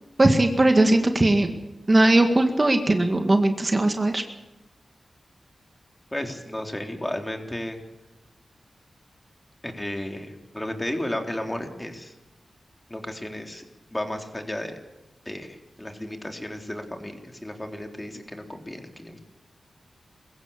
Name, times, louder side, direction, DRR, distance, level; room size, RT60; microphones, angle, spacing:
voice 1, 0.2-1.5 1.9-4.2, right 2 dB, 35° right, 6 dB, 2.0 m, -19 dB
voice 2, 6.1-7.8 9.6-12.1 12.9-13.6 13.9-14.7 15.3-19.2, left 1 dB, 15° left, 4 dB, 3.5 m, -33 dB
22.5 x 15.0 x 8.6 m, 1.0 s
cardioid pair, 45°, 0 cm